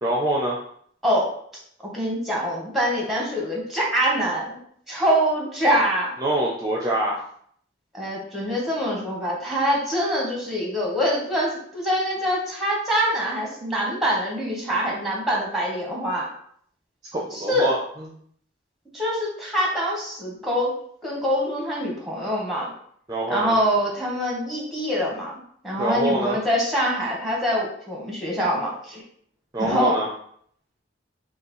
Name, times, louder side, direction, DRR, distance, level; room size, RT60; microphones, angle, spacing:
voice 1, 0.0-0.6 6.2-7.2 17.1-17.8 23.1-23.6 25.8-26.4 29.5-30.1, right 1 dB, 20° right, -2 dB, 0.5 m, -24 dB
voice 2, 1.0-1.3 1.8-4.6 4.9-6.1 7.9-16.3 17.3-17.7 18.9-22.7 23.3-25.3 25.6-29.0 29.6-30.0, equal, ahead, -3 dB, 1.1 m, -24 dB
5.5 x 2.3 x 3.0 m, 0.63 s
head